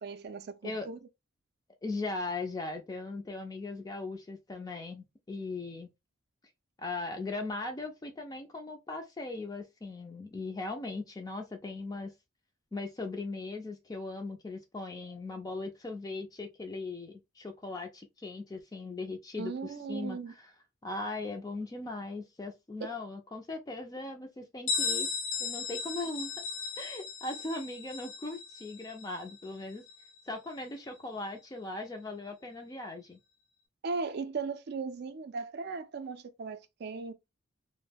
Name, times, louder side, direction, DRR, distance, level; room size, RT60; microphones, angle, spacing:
voice 1, 0.0-1.0 19.4-20.3 22.8-22.9 33.8-37.1, right 4 dB, 50° right, 0.4 m, -37 dB
voice 2, 1.8-5.9 6.8-12.1 12.7-20.4 20.8-25.1 25.4-26.4 26.8-29.8 30.3-33.2, left 2 dB, 20° left, 0.3 m, -39 dB
Bell, 24.7-30.2, left 5 dB, 70° left, 0.8 m, -36 dB
2.2 x 2.0 x 3.3 m
head